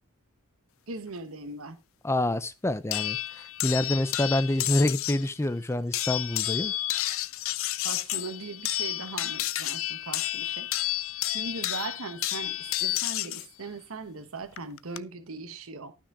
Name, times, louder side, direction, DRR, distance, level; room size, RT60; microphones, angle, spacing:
voice 1, 0.9-1.8 7.8-10.7 11.3-16.0, right 3 dB, 70° right, 1.1 m, -39 dB
voice 2, 2.0-6.7, left 1 dB, 10° left, 0.5 m, -27 dB
sound 1, 2.9-5.3 5.9-13.5 14.6-15.0, left 14 dB, 65° left, 0.5 m, -31 dB
12.5 x 6.0 x 4.7 m
head